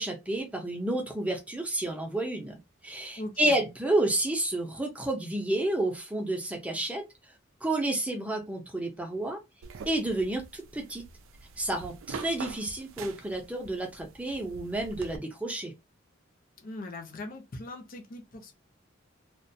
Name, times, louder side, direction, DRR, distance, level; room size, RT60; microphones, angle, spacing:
voice 1, 0.0-7.0 7.6-9.4 9.9-11.0 11.6-15.7, right 1 dB, 5° right, 0.5 m, -30 dB
voice 2, 3.2-3.6 16.6-18.5, left 2 dB, 45° left, 0.6 m, -40 dB
sound 1, 9.6-15.2, right 5 dB, 85° right, 0.4 m, -45 dB
2.3 x 2.2 x 2.6 m
head